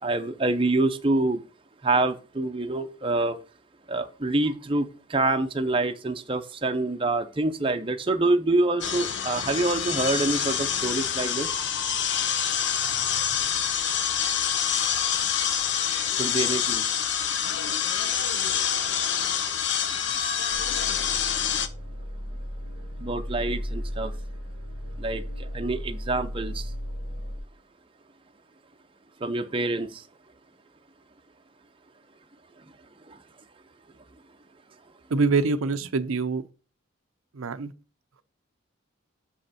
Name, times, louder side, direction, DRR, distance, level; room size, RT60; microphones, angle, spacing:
voice 1, 0.0-1.4 1.8-3.4 3.9-11.5 16.1-16.8 23.0-24.1 25.0-26.7 29.2-30.1 33.1-33.2, right 2 dB, 25° right, 0.6 m, -26 dB
sound 1, 8.8-21.7, left 8 dB, 60° left, 0.7 m, -26 dB
sound 2, 20.5-27.4, equal, 85° left, 2.8 m, -35 dB
voice 2, 35.1-36.4 37.4-37.7, right 4 dB, 80° right, 0.6 m, -25 dB
7.0 x 5.3 x 4.2 m
head